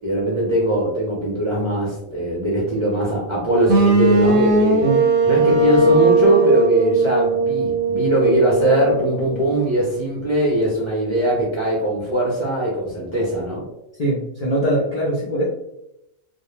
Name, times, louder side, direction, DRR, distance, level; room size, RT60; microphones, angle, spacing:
voice 1, 0.0-4.8 5.2-13.6, right 1 dB, 35° right, -5 dB, 0.4 m, -21 dB
sound 1, 3.7-9.6, right 2 dB, 90° right, 1.0 m, -18 dB
voice 2, 14.0-15.4, right 1 dB, 60° left, -5 dB, 0.4 m, -21 dB
2.2 x 2.1 x 3.0 m, 0.83 s
omnidirectional pair, 1.5 m